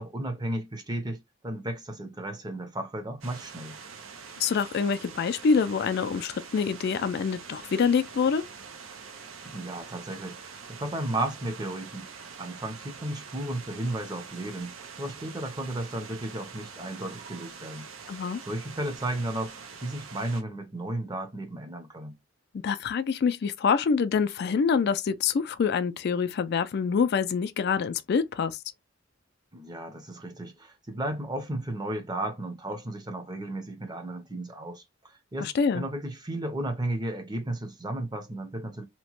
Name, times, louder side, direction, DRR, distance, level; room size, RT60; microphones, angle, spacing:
voice 1, 0.0-3.8 9.4-17.9 18.5-22.2 29.5-38.8, right 1 dB, 20° right, 0.6 m, -34 dB
sound 1, 3.2-20.4, right 5 dB, 85° right, 0.6 m, -45 dB
voice 2, 4.4-8.4 18.1-18.4 22.6-28.6 35.4-35.9, left 5 dB, 55° left, 0.3 m, -26 dB
2.9 x 2.1 x 2.9 m
head